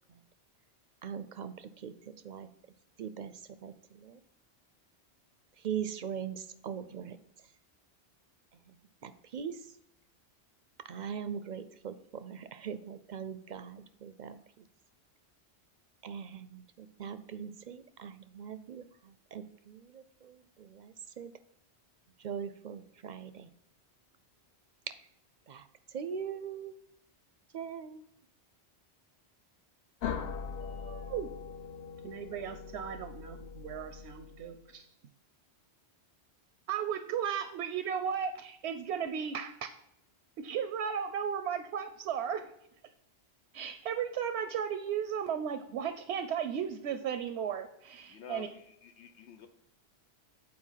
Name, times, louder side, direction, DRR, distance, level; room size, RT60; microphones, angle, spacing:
voice 1, 1.0-2.5 3.0-4.2 5.6-7.2 9.0-9.6 10.9-14.6 16.0-21.3 22.2-23.5 24.9-25.0 25.5-26.7 27.5-28.1, right 8 dB, 55° right, 0.5 m, -41 dB
sound 1, 30.0-34.7, left 6 dB, 70° left, 0.9 m, -41 dB
voice 2, 30.6-31.3 32.0-34.9 36.7-39.6 40.4-42.5 43.5-48.5, right 8 dB, 85° right, 0.9 m, -35 dB
voice 3, 48.1-49.5, left 7 dB, 90° left, 1.1 m, -49 dB
8.6 x 4.5 x 5.6 m
omnidirectional pair, 1.1 m